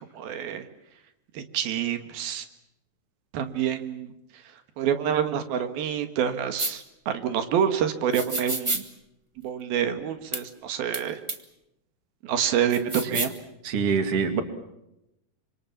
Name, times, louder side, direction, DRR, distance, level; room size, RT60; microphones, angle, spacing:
voice 1, 0.2-0.6 1.3-2.5 3.3-4.1 4.8-8.8 9.4-11.2 12.2-13.3, right 8 dB, 90° right, 9 dB, 3.5 m, -27 dB
sound 1, 6.6-6.7 8.1-8.8 10.3-10.4 10.9-11.0 11.3-11.4 12.7-13.4, right 1 dB, 25° right, 0.6 m, -29 dB
voice 2, 13.6-14.4, right 5 dB, 45° right, 8 dB, 2.9 m, -24 dB
27.0 x 26.0 x 7.3 m, 0.86 s
omnidirectional pair, 4.1 m